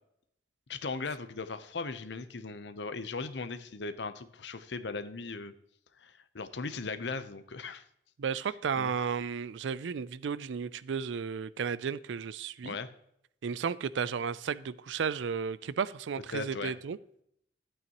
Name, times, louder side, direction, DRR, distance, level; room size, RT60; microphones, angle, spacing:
voice 1, 0.7-5.5 6.0-7.8 8.7-8.9 12.6-12.9 16.3-16.7, left 4 dB, 75° left, 11 dB, 0.7 m, -38 dB
voice 2, 8.2-12.8 13.4-17.0, right 6 dB, 80° right, 18 dB, 0.4 m, -33 dB
12.5 x 8.8 x 3.0 m, 0.74 s
head